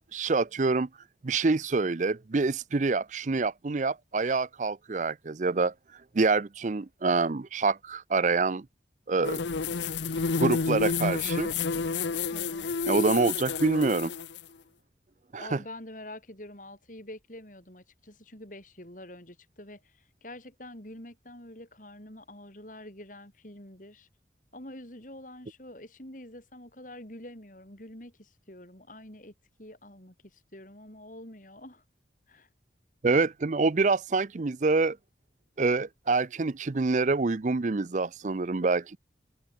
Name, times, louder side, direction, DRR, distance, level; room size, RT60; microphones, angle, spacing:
voice 1, 0.1-0.9 1.2-5.7 6.1-8.6 9.1-9.4 10.4-11.5 12.9-14.1 15.3-15.6 33.0-35.0 35.6-39.0, right 3 dB, 40° right, 0.5 m, -26 dB
sound 1, 9.2-14.4, left 4 dB, 80° left, 0.8 m, -30 dB
voice 2, 12.3-12.7 15.4-24.1 24.5-29.3 29.6-31.8 32.3-32.5, left 1 dB, 45° left, 5.9 m, -46 dB
head